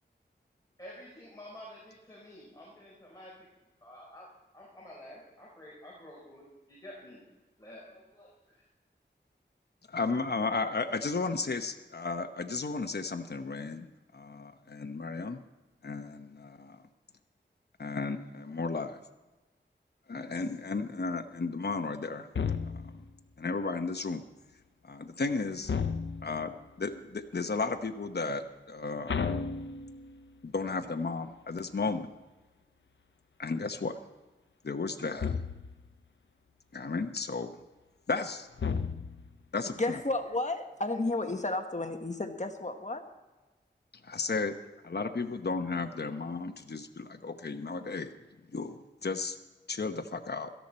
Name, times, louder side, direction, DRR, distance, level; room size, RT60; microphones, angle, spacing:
voice 1, 0.8-3.5 3.8-7.3 7.6-8.6, left 1 dB, 20° left, -5 dB, 4.5 m, -50 dB
voice 2, 9.9-15.4 15.8-16.8 17.8-19.0 20.1-22.3 23.4-24.2 24.8-25.7 26.2-29.2 30.4-32.1 33.4-34.0 34.6-35.4 36.7-37.5 38.1-38.5 39.5-40.0 44.0-44.6 44.8-48.1 48.5-49.4 49.7-50.5, left 4 dB, 60° left, 6 dB, 0.9 m, -34 dB
sound 1, 22.3-23.1 25.6-26.5 29.1-30.2 35.2-35.9 38.6-39.4, left 5 dB, 85° left, 0.7 m, -33 dB
voice 3, 39.7-43.0, left 2 dB, 40° left, 6 dB, 1.3 m, -32 dB
17.5 x 13.5 x 4.3 m, 1.2 s
wide cardioid pair, 70°, 19 cm